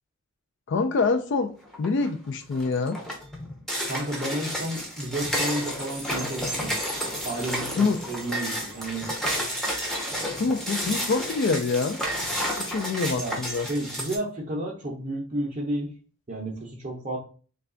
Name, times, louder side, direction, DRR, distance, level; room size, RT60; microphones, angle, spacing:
voice 1, 0.7-3.0 7.8-8.0 10.3-12.0 12.4-13.7, left 4 dB, 55° left, 0.3 m, -26 dB
sound 1, 1.7-2.1 2.5-14.2, equal, ahead, 0.6 m, -31 dB
voice 2, 3.9-6.7 7.2-9.1 13.2-15.9 16.3-17.2, right 1 dB, 35° right, 0.6 m, -32 dB
3.2 x 2.3 x 3.7 m
head